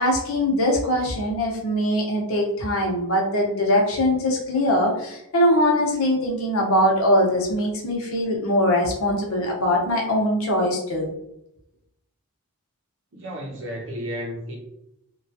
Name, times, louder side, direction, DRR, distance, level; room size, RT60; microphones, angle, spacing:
voice 1, 0.0-11.1, left 1 dB, 65° left, -1 dB, 0.8 m, -22 dB
voice 2, 13.1-14.6, equal, 60° right, 0 dB, 0.6 m, -32 dB
3.0 x 2.3 x 2.7 m, 0.82 s
head